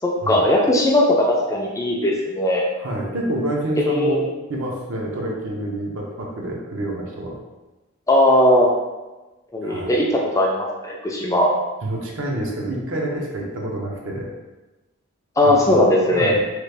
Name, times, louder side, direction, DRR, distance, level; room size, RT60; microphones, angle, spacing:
voice 1, 0.0-2.6 3.8-4.3 8.1-8.7 9.5-11.5 15.4-16.3, left 1 dB, 15° left, -2 dB, 0.3 m, -18 dB
voice 2, 2.8-7.4 9.6-9.9 11.8-14.3 15.4-16.4, right 1 dB, 60° right, -1 dB, 0.6 m, -28 dB
3.1 x 2.4 x 3.3 m, 1.1 s
head